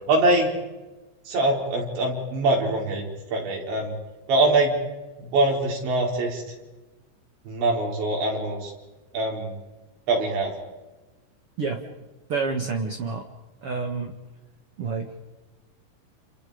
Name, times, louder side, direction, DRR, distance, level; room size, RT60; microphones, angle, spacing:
voice 1, 0.1-0.5 1.3-4.0 4.3-4.8 5.2-6.4 7.5-8.7 9.1-9.6 10.1-10.5, right 2 dB, 75° right, -1 dB, 7.2 m, -23 dB
voice 2, 12.3-13.2 13.6-14.1 14.8-15.2, right 4 dB, 55° right, 4 dB, 1.6 m, -28 dB
30.0 x 29.5 x 5.2 m, 1.1 s
omnidirectional pair, 5.2 m